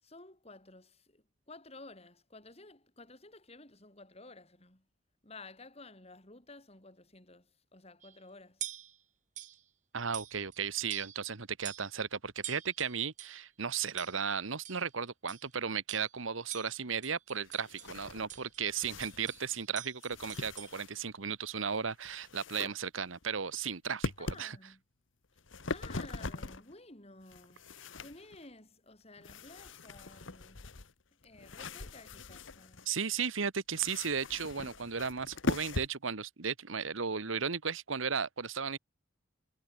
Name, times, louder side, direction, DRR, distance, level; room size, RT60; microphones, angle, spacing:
voice 1, 0.0-4.9 5.2-8.7 24.2-24.8 25.7-27.6 28.0-30.7 31.2-32.8, left 2 dB, 30° left, 5.2 m, -53 dB
sound 1, 8.0-8.2 8.6-9.0 9.4-9.6 10.1-10.6 10.9-11.3 11.6-12.0 12.4-13.4 14.0-14.3 14.6-14.9 15.3-15.5 15.9-16.2 16.5-17.9 18.3-20.8, right 11 dB, 40° right, 1.4 m, -46 dB
voice 2, 9.9-24.6 32.8-38.8, right 6 dB, 85° right, 1.3 m, -35 dB
sound 2, 17.4-19.6 20.0-21.2 21.7-22.7 23.1-23.6 24.0-24.4 25.2-26.7 27.2-28.5 29.2-32.9 33.7-35.9, left 3 dB, 75° left, 1.4 m, -41 dB
head